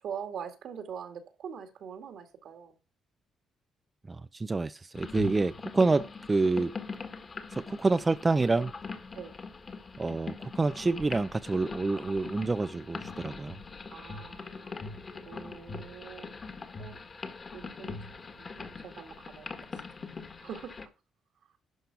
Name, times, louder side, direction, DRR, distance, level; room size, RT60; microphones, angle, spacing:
voice 1, 0.0-2.7 9.1-9.3 13.9-14.8 15.3-16.3 16.8-17.0 17.5-18.0 18.4-19.5 20.4-20.8, right 7 dB, 70° right, 2.2 m, -43 dB
voice 2, 4.1-6.7 7.5-8.7 10.0-13.6, right 3 dB, 25° right, 0.4 m, -28 dB
sound 1, 4.9-20.9, left 4 dB, 35° left, 1.7 m, -42 dB
11.5 x 5.2 x 6.0 m
cardioid pair, 90°, 0 cm